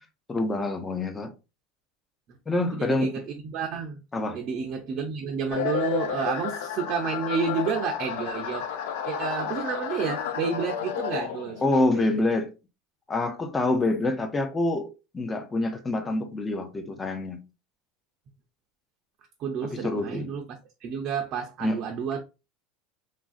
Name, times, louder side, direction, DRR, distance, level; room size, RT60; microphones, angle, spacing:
voice 1, 0.3-1.3 2.5-3.1 4.1-4.4 11.6-12.5 13.1-14.9 15.1-17.5 19.7-20.3 21.6-21.8, left 2 dB, 15° left, 0.4 m, -26 dB
voice 2, 2.7-4.0 4.3-8.7 9.1-12.1 19.4-22.2, right 6 dB, 45° right, 0.4 m, -30 dB
sound 1, 5.5-11.7, left 9 dB, 80° left, 0.4 m, -32 dB
3.1 x 2.5 x 2.4 m
supercardioid pair, 140°, 0 cm